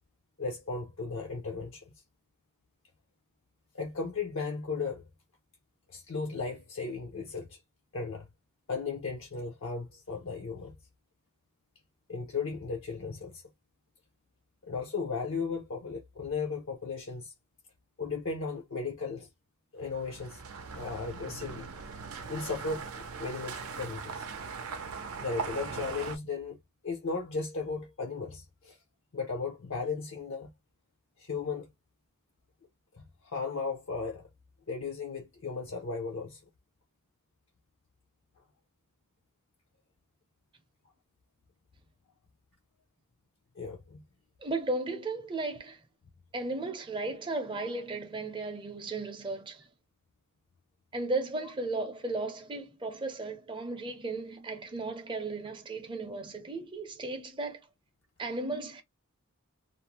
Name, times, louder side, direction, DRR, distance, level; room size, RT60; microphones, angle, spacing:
voice 1, 0.4-1.8 3.7-5.0 5.9-7.6 7.9-8.3 8.7-10.7 12.1-13.4 14.7-17.3 18.0-19.3 19.7-20.4 20.7-21.7 22.3-24.3 25.2-26.6 26.8-28.8 29.1-30.5 31.2-31.7 32.9-34.2 34.7-36.4 43.6-44.0, left 4 dB, 60° left, 0.6 m, -36 dB
sound 1, 19.9-26.2, right 5 dB, 80° right, 0.6 m, -40 dB
voice 2, 44.4-45.8 46.3-49.7 50.9-57.6 58.2-58.8, right 2 dB, 20° right, 0.6 m, -35 dB
2.5 x 2.0 x 2.9 m
head